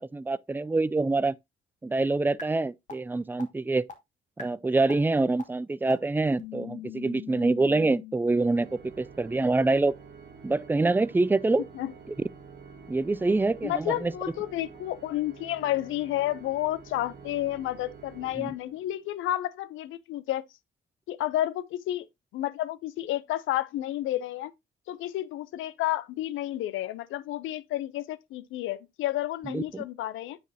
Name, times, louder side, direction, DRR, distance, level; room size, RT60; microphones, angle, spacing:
voice 1, 0.0-1.4 1.8-3.9 4.4-9.9 10.4-11.6 12.9-14.1 18.4-18.5 29.4-29.8, right 3 dB, 10° right, 0.4 m, -26 dB
sound 1, 2.4-2.5 2.9-3.0 3.4-3.5 3.9-4.0 4.4-4.5 4.9-5.0 5.4-5.5 5.9-6.0 6.4-8.2, left 9 dB, 35° left, 2.1 m, -41 dB
Organ, 8.4-19.1, right 5 dB, 55° right, 1.7 m, -48 dB
voice 2, 13.6-20.4 21.1-22.1 22.3-24.5 24.9-30.4, left 14 dB, 85° left, 0.6 m, -31 dB
9.0 x 5.1 x 2.8 m
cardioid pair, 90°, 20 cm